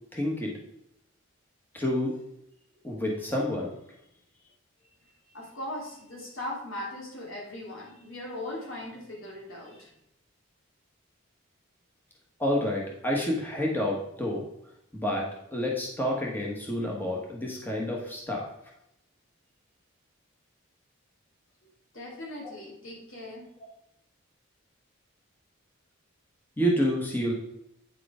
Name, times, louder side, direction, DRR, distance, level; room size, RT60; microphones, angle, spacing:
voice 1, 0.1-0.5 1.7-2.1 2.8-3.7 12.4-14.4 14.9-18.5 26.6-27.3, equal, 10° left, -2 dB, 1.3 m, -29 dB
voice 2, 5.3-9.9 21.9-23.5, left 1 dB, 75° left, -3 dB, 2.9 m, -39 dB
9.2 x 4.8 x 4.9 m, 0.79 s
head